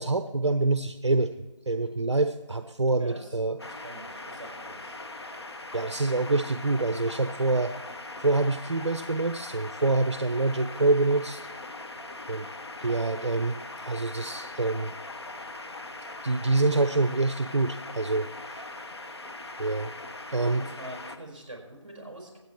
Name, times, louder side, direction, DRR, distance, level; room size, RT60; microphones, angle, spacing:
voice 1, 0.0-1.3 1.7-3.6 5.7-7.7 8.2-11.4 12.3-12.5 12.8-14.9 16.2-18.7 19.6-19.9 20.3-20.7, right 2 dB, 60° right, 10 dB, 0.6 m, -26 dB
voice 2, 3.0-5.0 20.3-22.4, right 1 dB, 20° right, -2 dB, 4.1 m, -45 dB
sound 1, 3.6-21.2, left 2 dB, 55° left, 1.1 m, -41 dB
23.5 x 8.1 x 3.1 m, 1.2 s
figure-of-eight pair, 165°, 16 cm